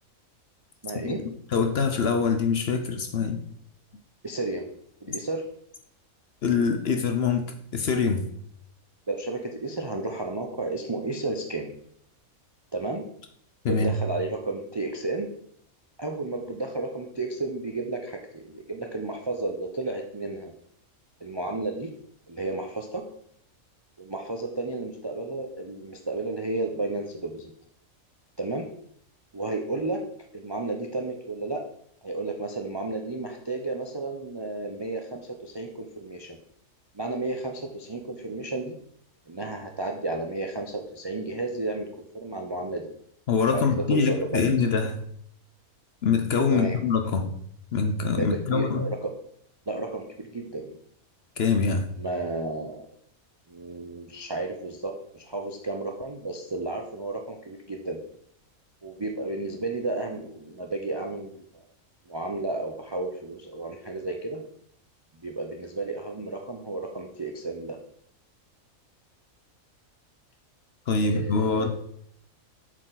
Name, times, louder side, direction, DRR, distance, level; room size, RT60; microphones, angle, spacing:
voice 1, 0.8-1.2 4.2-4.7 5.0-5.4 9.1-11.7 12.7-13.0 13.7-15.3 16.0-20.5 21.2-21.9 22.3-23.0 24.0-27.5 28.4-28.7 29.3-30.0 30.3-31.6 32.0-36.4 36.9-38.8 39.3-41.9 42.1-42.9 43.5-44.7 46.5-46.8 48.2-49.1 49.7-50.7 52.0-52.9 53.5-58.0 58.8-61.5 62.1-64.4 65.2-67.8 71.0-71.7, right 2 dB, 40° right, 3 dB, 0.3 m, -32 dB
voice 2, 1.5-3.4 6.4-7.5 7.7-8.3 13.6-14.0 43.3-45.0 46.0-47.3 47.7-48.8 51.4-51.9 70.9-71.7, left 5 dB, 55° left, 7 dB, 0.8 m, -24 dB
7.5 x 4.7 x 3.9 m, 0.66 s
omnidirectional pair, 1.5 m